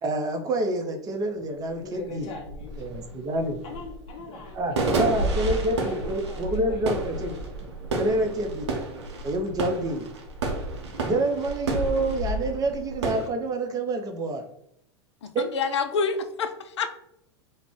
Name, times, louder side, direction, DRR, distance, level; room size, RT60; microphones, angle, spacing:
voice 1, 0.0-2.2 2.8-3.6 4.5-7.4 7.9-8.7 9.2-10.1 11.1-14.4 15.3-15.5, right 2 dB, 25° right, 4 dB, 0.5 m, -27 dB
sound 1, 1.4-1.5 1.8-13.3, right 2 dB, 80° right, 0.6 m, -30 dB
voice 2, 1.8-2.9 3.6-7.4, left 4 dB, 40° left, 0 dB, 0.7 m, -42 dB
voice 3, 15.2-16.9, left 5 dB, 75° left, 9 dB, 0.4 m, -27 dB
2.4 x 2.1 x 3.5 m, 0.76 s
hypercardioid pair, 90°, 14 cm